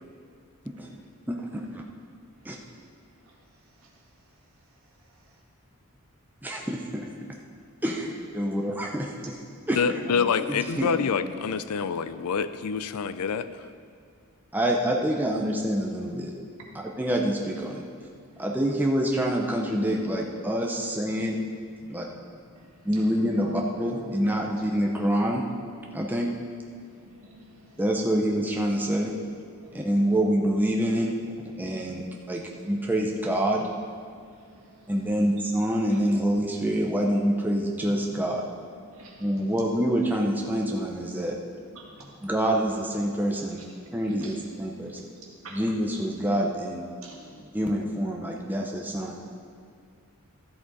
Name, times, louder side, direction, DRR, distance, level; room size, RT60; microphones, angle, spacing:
voice 1, 1.3-1.8 2.4-2.6 6.4-7.1 7.8-8.0 8.3-9.1 9.7-9.8 10.5-10.9 14.5-16.3 17.0-17.8 18.4-21.4 21.9-22.1 22.8-25.4 25.9-26.3 27.8-29.1 29.7-31.1 31.6-33.6 34.9-38.4 39.2-41.3 42.2-43.6 43.9-44.3 44.6-45.1 45.5-46.9 47.5-49.3, equal, 10° right, -1 dB, 0.7 m, -26 dB
voice 2, 2.3-5.1 6.6-6.7 7.7-7.8 10.0-10.3 10.6-11.5 16.6-16.7 18.3-18.4 20.8-20.9 21.8-24.5 26.8-28.2 29.3-30.2 31.6-32.1 32.5-33.1 34.1-35.2 35.9-36.0 37.8-37.9 38.2-39.6 41.7-42.3 43.3-44.4 44.9-45.1 45.4-45.9 47.0-47.6 48.9-49.0, right 1 dB, 65° right, -3 dB, 1.9 m, -48 dB
voice 3, 9.7-13.7, left 6 dB, 90° left, 13 dB, 0.4 m, -27 dB
13.0 x 7.5 x 4.1 m, 2.2 s
head